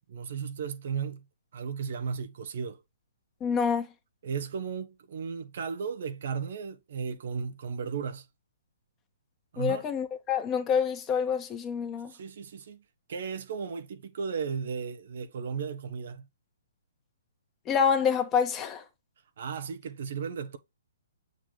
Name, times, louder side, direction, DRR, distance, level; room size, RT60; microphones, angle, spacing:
voice 1, 0.1-1.2 1.5-2.8 4.2-8.3 9.5-9.9 12.1-12.8 13.1-16.3 19.4-20.6, right 6 dB, 55° right, 1.1 m, -35 dB
voice 2, 3.4-3.9 9.6-12.1 17.6-18.8, left 7 dB, 20° left, 1.6 m, -27 dB
7.3 x 3.9 x 3.3 m
hypercardioid pair, 130°, 0 cm